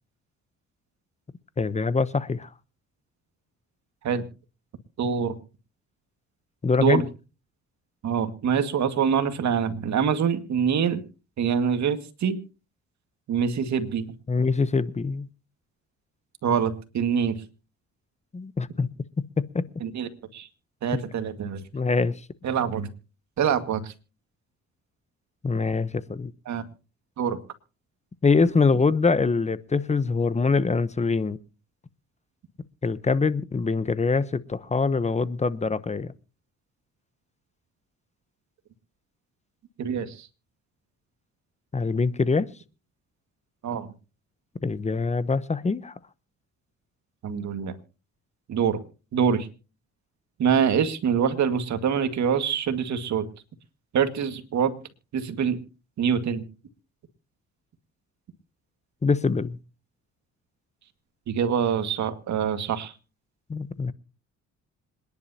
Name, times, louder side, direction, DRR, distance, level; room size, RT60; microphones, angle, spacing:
voice 1, 1.6-2.5 6.6-7.0 14.3-15.3 18.3-18.9 19.4-19.6 21.7-22.1 25.4-26.3 28.2-31.4 32.8-36.1 41.7-42.5 44.6-45.9 59.0-59.6 63.5-63.9, left 4 dB, 25° left, 0.9 m, -24 dB
voice 2, 5.0-5.4 6.8-7.0 8.0-11.0 11.4-12.4 13.3-14.1 16.4-17.4 19.8-20.5 20.8-21.6 22.4-22.9 23.4-23.9 26.5-26.6 27.2-27.4 39.8-40.3 43.6-43.9 47.2-47.8 48.5-48.8 49.1-49.5 50.4-53.3 53.9-54.7 55.1-55.6 56.0-56.4 61.3-62.9, right 7 dB, 65° right, 1.9 m, -25 dB
26.5 x 10.5 x 2.8 m
cardioid pair, 90°, 30 cm